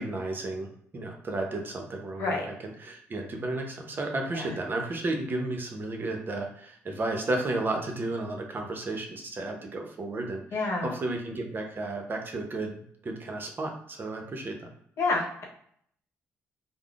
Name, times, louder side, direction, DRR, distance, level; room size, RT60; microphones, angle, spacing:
voice 1, 0.0-14.7, right 2 dB, 40° right, 2 dB, 0.7 m, -33 dB
voice 2, 10.5-10.9 15.0-15.4, left 3 dB, 65° left, -1 dB, 0.9 m, -28 dB
3.4 x 2.0 x 2.3 m, 0.66 s
supercardioid pair, 65°, 5 cm